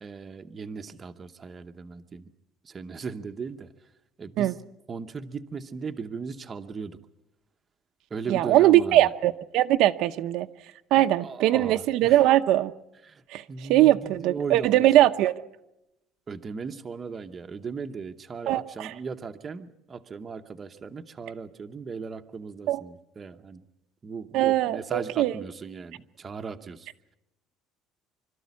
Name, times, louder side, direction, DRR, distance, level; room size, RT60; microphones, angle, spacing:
voice 1, 0.0-2.3 2.6-3.7 4.2-4.6 4.9-7.0 8.1-9.1 11.0-12.2 13.0-14.9 16.3-23.6 24.0-26.9, right 5 dB, 20° right, 6 dB, 0.8 m, -37 dB
voice 2, 8.3-10.5 10.9-12.7 13.3-15.3 18.5-18.9 22.7-22.8 24.3-25.3, right 14 dB, 60° right, 7 dB, 0.7 m, -21 dB
26.0 x 13.0 x 9.6 m, 0.91 s
cardioid pair, 175°, 0 cm